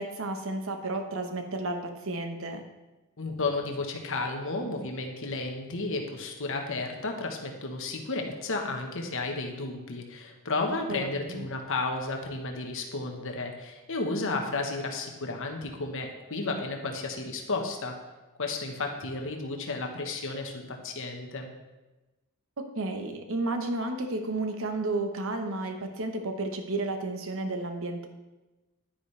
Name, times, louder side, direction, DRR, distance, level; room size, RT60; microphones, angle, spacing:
voice 1, 0.0-2.6 10.9-11.4 16.3-16.4 22.6-28.1, right 2 dB, 65° right, 5 dB, 1.2 m, -32 dB
voice 2, 3.2-18.0 18.4-21.5, left 3 dB, 60° left, 3 dB, 1.3 m, -33 dB
10.5 x 9.9 x 3.4 m, 1.1 s
head